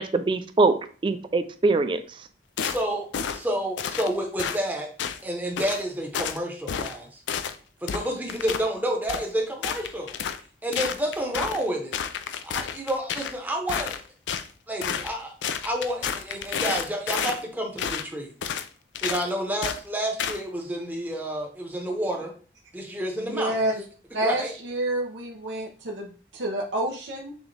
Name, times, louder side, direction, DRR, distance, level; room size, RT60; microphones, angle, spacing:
voice 1, 0.0-2.0, right 3 dB, 25° right, 0.3 m, -23 dB
sound 1, 2.6-2.8 3.1-3.4 3.8-4.1 4.4-4.6 5.0-5.2 5.6-5.8 6.1-6.4 6.7-7.0 7.3-7.6 7.9-8.6 9.1-9.3 9.6-10.4 10.7-11.6 11.9-13.4 13.7-14.5 14.8-15.1 15.4-17.4 17.8-18.1 18.4-18.7 18.9-19.3 19.6-19.8 20.2-20.4, left 7 dB, 85° left, 0.4 m, -30 dB
voice 2, 2.6-3.1 3.3-4.9 5.2-7.2 7.8-10.1 10.6-12.0 12.4-14.0 14.7-18.3 19.0-22.3 22.7-23.6 24.2-24.5, right 1 dB, 10° right, 0.8 m, -29 dB
voice 3, 23.2-23.7 24.1-27.3, right 1 dB, 80° right, 0.8 m, -28 dB
6.2 x 2.4 x 3.2 m
head